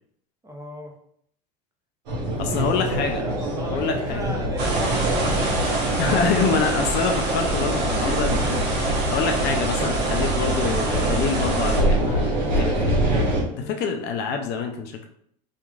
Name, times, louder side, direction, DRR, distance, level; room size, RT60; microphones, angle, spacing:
voice 1, 0.4-0.9 2.2-5.6 6.4-6.5 13.5-13.8, right 1 dB, 15° right, 0 dB, 0.7 m, -37 dB
sound 1, 2.1-13.4, right 1 dB, 80° right, 1.0 m, -25 dB
voice 2, 2.4-3.3 3.7-4.3 6.0-13.0 13.6-15.1, left 5 dB, 55° left, 4 dB, 0.5 m, -26 dB
sound 2, 4.6-11.8, right 2 dB, 50° right, 0.9 m, -26 dB
2.9 x 2.5 x 2.3 m, 0.68 s
hypercardioid pair, 80°, 21 cm